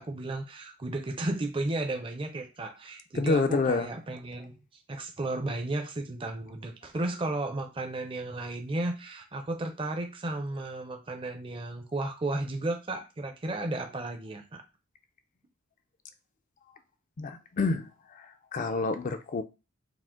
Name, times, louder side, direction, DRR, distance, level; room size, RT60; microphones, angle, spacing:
voice 1, 0.0-4.6 4.9-14.6, right 2 dB, 25° right, 0.5 m, -34 dB
voice 2, 3.1-3.9 17.2-19.4, left 3 dB, 35° left, 0.4 m, -28 dB
4.9 x 2.1 x 3.7 m
head